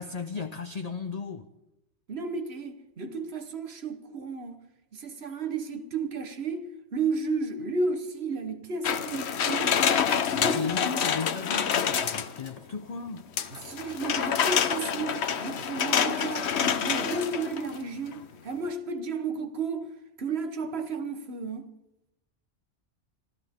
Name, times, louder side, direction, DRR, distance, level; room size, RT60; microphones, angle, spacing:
voice 1, 0.0-1.5 10.3-13.3, left 5 dB, 40° left, 0.6 m, -35 dB
voice 2, 2.1-4.6 4.9-9.8 10.4-10.6 10.8-11.0 13.5-19.9 20.2-21.6, right 4 dB, 60° right, 1.4 m, -33 dB
sound 1, 8.8-12.5 13.4-17.8 18.1-18.2, left 7 dB, 65° left, 1.1 m, -27 dB
25.5 x 14.0 x 3.6 m
omnidirectional pair, 1.2 m